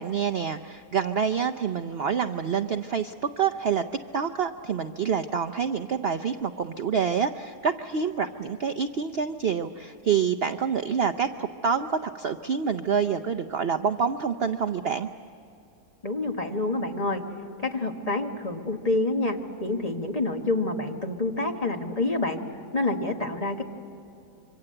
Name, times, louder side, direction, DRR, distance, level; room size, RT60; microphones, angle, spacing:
voice 1, 0.0-3.8 4.1-15.1, right 6 dB, 55° right, 9 dB, 0.7 m, -27 dB
voice 2, 16.0-17.2 17.6-22.4 22.7-23.6, left 2 dB, 25° left, 3 dB, 1.5 m, -27 dB
26.5 x 24.5 x 7.8 m, 2.8 s
omnidirectional pair, 1.7 m